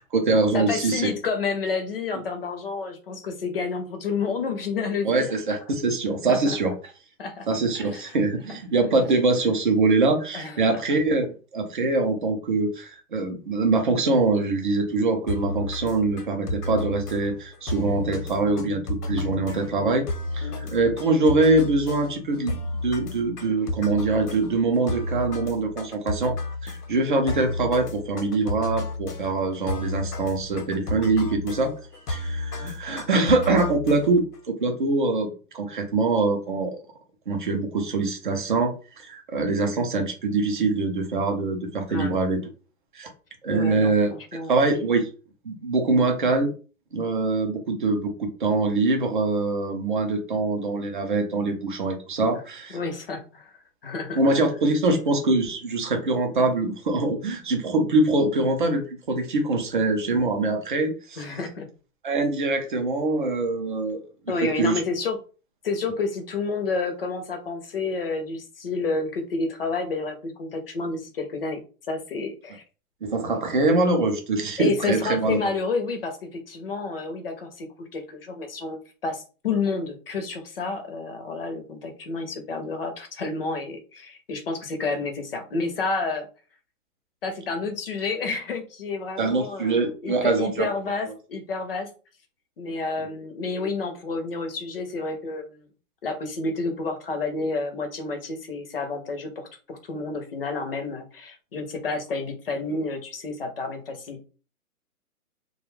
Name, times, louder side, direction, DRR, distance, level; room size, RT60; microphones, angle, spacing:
voice 1, 0.0-1.1 5.0-6.7 7.5-11.3 11.5-20.1 20.3-22.5 22.8-26.3 26.6-31.7 32.1-34.2 34.6-35.3 35.5-36.8 37.3-42.4 42.9-43.1 43.4-44.1 44.5-45.1 45.4-46.5 46.9-52.8 54.2-61.2 62.0-64.0 64.4-64.8 73.0-75.4 89.2-90.7, right 3 dB, 35° right, 4 dB, 0.5 m, -23 dB
voice 2, 0.5-5.3 6.3-6.6 7.2-7.5 7.8-8.1 8.5-8.6 10.3-10.8 20.4-20.8 41.9-42.1 43.5-44.6 52.7-53.5 53.8-54.2 61.2-61.7 64.3-65.2 65.6-71.6 71.9-72.6 74.6-86.3 87.2-91.9 92.6-95.7 96.0-104.3, left 4 dB, 40° left, 5 dB, 0.6 m, -30 dB
sound 1, 15.3-34.4, left 2 dB, 80° left, 0.9 m, -32 dB
2.4 x 2.3 x 3.1 m, 0.35 s
hypercardioid pair, 155°, 46 cm